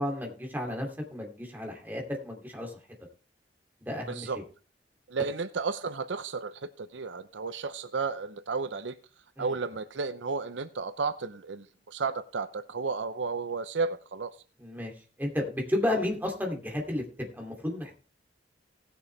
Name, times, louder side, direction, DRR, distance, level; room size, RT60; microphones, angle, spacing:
voice 1, 0.0-2.8 3.9-4.3 9.4-9.5 14.6-14.9 15.2-18.0, left 1 dB, 10° right, 1 dB, 2.7 m, -32 dB
voice 2, 4.1-4.4 5.1-9.0 9.4-14.3 15.9-16.0, right 4 dB, 85° right, 12 dB, 0.7 m, -33 dB
18.5 x 6.9 x 3.3 m, 0.36 s
head